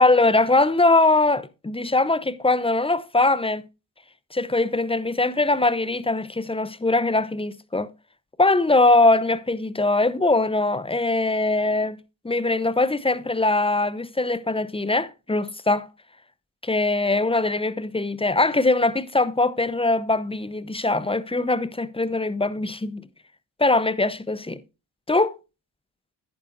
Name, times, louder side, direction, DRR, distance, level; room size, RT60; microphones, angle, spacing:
voice 1, 0.0-3.6 4.3-7.9 8.4-12.0 12.2-15.9 16.6-23.0 23.6-24.6 25.1-25.4, left 2 dB, 10° left, 0.8 m, -21 dB
10.0 x 9.6 x 2.6 m
supercardioid pair, 45°, 50 cm